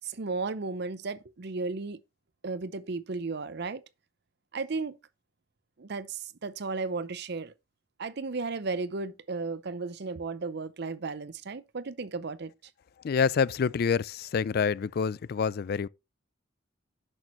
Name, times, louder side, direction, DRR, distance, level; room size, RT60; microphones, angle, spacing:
voice 1, 0.0-2.0 2.4-3.8 4.5-5.0 5.8-7.5 8.0-12.5, right 3 dB, 60° right, 0.6 m, -34 dB
voice 2, 13.0-15.9, left 6 dB, 55° left, 0.4 m, -27 dB
10.5 x 6.2 x 3.1 m
head